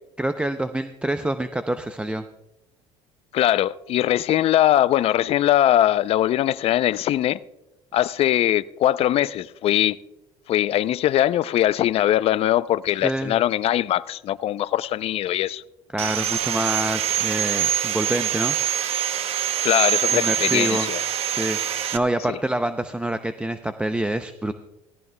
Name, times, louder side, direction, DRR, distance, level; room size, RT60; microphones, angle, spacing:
voice 1, 0.2-2.2 13.0-13.4 15.9-18.6 20.1-20.9 21.2-24.5, right 1 dB, 10° right, 0.5 m, -26 dB
voice 2, 3.3-7.4 7.9-10.0 10.5-15.6 19.6-21.0 22.3-22.4, left 12 dB, 50° left, 0.5 m, -21 dB
Sawing, 16.0-22.0, right 10 dB, 50° right, 0.8 m, -24 dB
18.0 x 14.5 x 2.2 m
supercardioid pair, 95°, 13 cm